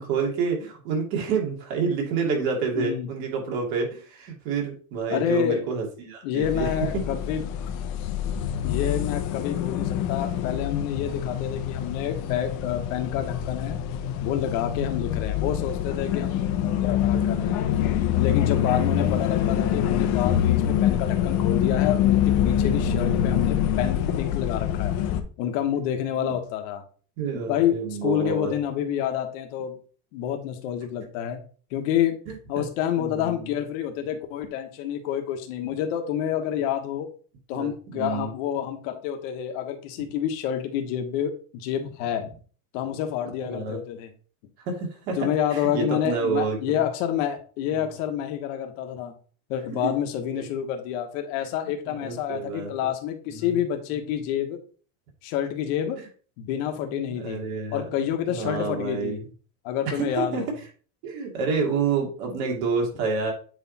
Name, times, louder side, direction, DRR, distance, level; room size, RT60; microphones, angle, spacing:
voice 1, 0.0-7.0 26.2-26.3 27.2-28.5 32.3-32.6 33.0-33.5 37.5-38.3 43.5-43.8 44.7-46.6 47.7-47.9 49.7-49.9 50.4-50.5 51.9-52.7 53.3-53.6 57.1-57.8 58.3-59.2 59.9-60.4 61.0-63.3, right 5 dB, 55° right, 0 dB, 2.6 m, -28 dB
voice 2, 2.7-3.1 5.1-5.7 6.2-7.4 8.6-13.8 14.2-17.7 18.1-25.0 25.4-26.8 27.3-29.8 30.1-31.4 31.7-32.2 32.5-37.1 37.5-42.3 42.7-44.1 45.2-49.1 49.5-54.6 55.2-56.0 56.4-57.4 57.7-59.2 59.6-60.5, left 10 dB, 60° left, 5 dB, 1.4 m, -28 dB
sound 1, 6.4-25.2, left 10 dB, 40° left, 0.8 m, -25 dB
8.2 x 3.4 x 4.2 m, 0.40 s
supercardioid pair, 150°, 44 cm